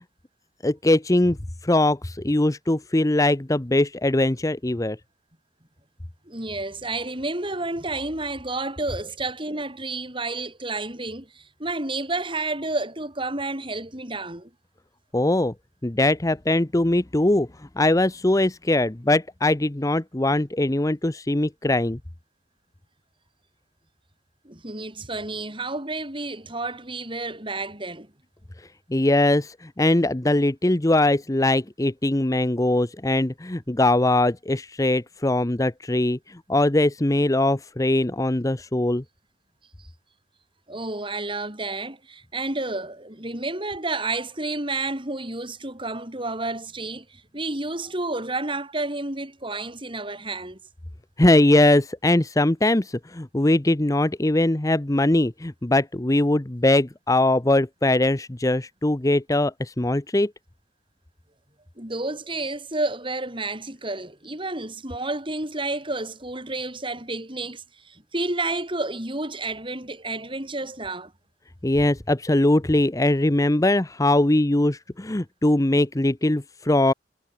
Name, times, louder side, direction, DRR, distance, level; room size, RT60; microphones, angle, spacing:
voice 1, 0.6-1.4 1.6-5.0 15.1-15.5 15.8-17.5 17.8-22.0 28.9-39.0 51.2-60.3 71.6-76.9, left 1 dB, 20° left, 0.8 m, -21 dB
voice 2, 6.3-14.5 24.4-28.1 40.7-50.6 61.8-71.1, right 2 dB, 30° right, 7.9 m, -30 dB
head